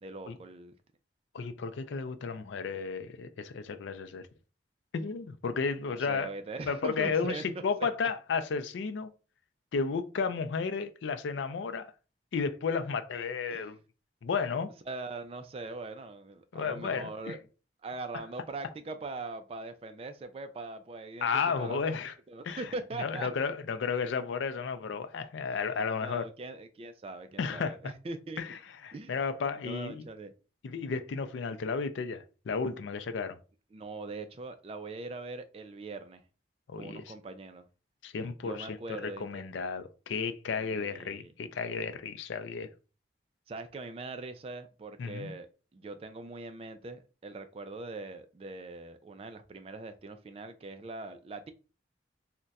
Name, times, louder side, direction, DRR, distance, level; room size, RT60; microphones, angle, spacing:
voice 1, 0.0-0.7 6.0-7.6 13.5-13.7 14.9-17.4 17.8-21.3 21.6-22.0 22.3-23.3 25.5-25.6 26.0-28.4 28.9-29.1 29.6-30.3 33.7-36.2 36.7-37.6 38.4-39.5 40.5-41.3 43.5-51.5, right 3 dB, 30° right, 0.3 m, -41 dB
voice 2, 1.3-4.3 4.9-6.3 6.7-9.1 9.7-11.9 12.3-13.8 14.2-14.7 16.5-17.4 18.1-18.2 21.2-22.1 22.4-22.7 23.0-26.2 27.4-27.9 28.4-30.1 30.6-33.4 36.7-37.1 38.0-42.7 45.0-45.3, left 5 dB, 80° left, 0.4 m, -33 dB
2.3 x 2.1 x 3.9 m
head